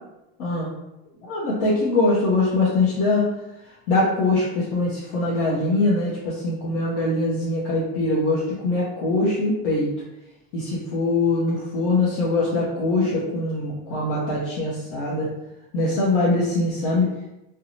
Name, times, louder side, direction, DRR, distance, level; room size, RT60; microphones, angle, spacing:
voice 1, 1.3-3.3 3.9-9.9 10.5-15.3 15.7-17.1, left 2 dB, 65° left, -7 dB, 0.8 m, -22 dB
2.6 x 2.2 x 2.9 m, 0.93 s
cardioid pair, 175°, 39 cm